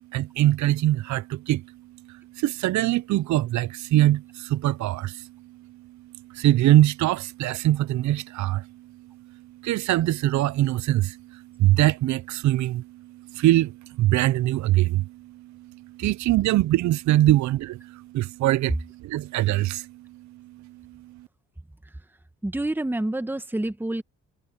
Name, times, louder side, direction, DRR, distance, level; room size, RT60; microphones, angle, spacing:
voice 1, 0.1-1.6 2.1-5.3 6.3-8.7 9.6-21.3, right 15 dB, 70° right, 0.5 m, -23 dB
voice 2, 21.8-22.2 22.4-24.0, right 1 dB, 5° right, 1.5 m, -28 dB
cardioid pair, 90°, 30 cm